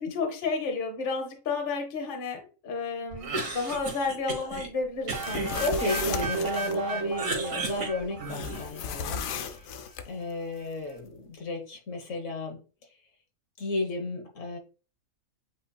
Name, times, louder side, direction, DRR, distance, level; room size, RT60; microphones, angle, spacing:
voice 1, 0.0-5.7 6.1-6.2, left 4 dB, 45° left, 4 dB, 1.0 m, -32 dB
Cough, 3.1-4.7 5.1-6.6 6.9-8.8, right 3 dB, 80° right, 1.6 m, -35 dB
sound 1, 5.1-6.8 8.3-10.1, left 7 dB, 90° left, 1.0 m, -35 dB
sound 2, 5.1-8.9, right 4 dB, 50° right, 1.3 m, -33 dB
voice 2, 5.6-9.8 10.0-12.6 13.6-14.6, left 2 dB, 70° left, 2 dB, 1.4 m, -33 dB
8.3 x 2.8 x 2.2 m, 0.35 s
omnidirectional pair, 1.4 m